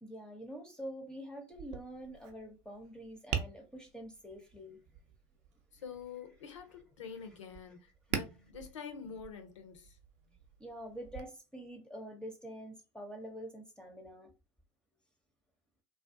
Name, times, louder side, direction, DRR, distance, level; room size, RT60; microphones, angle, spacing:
voice 1, 0.0-4.8 10.6-14.3, equal, 5° left, 0.6 m, -46 dB
Tap, 1.5-11.2, right 7 dB, 55° right, 0.5 m, -45 dB
voice 2, 5.7-10.0, left 6 dB, 80° left, 0.6 m, -47 dB
2.4 x 2.2 x 2.5 m
hypercardioid pair, 80°, 15 cm